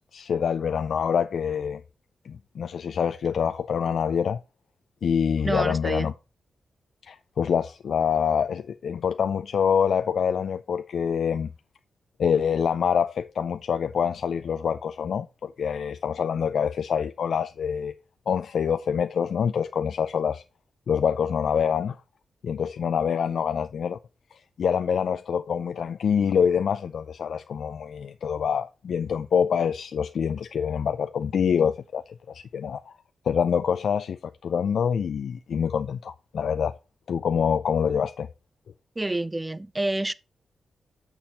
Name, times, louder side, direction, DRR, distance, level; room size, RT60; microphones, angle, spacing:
voice 1, 0.1-1.8 2.2-4.4 5.0-6.1 7.0-11.5 12.2-17.9 18.3-20.4 20.9-22.0 22.4-24.0 24.3-32.9 33.3-36.8 37.1-38.3, left 7 dB, 75° left, 0.4 m, -26 dB
voice 2, 5.4-6.1 39.0-40.1, right 2 dB, 20° right, 0.5 m, -28 dB
7.0 x 6.1 x 4.2 m
cardioid pair, 65°, 0 cm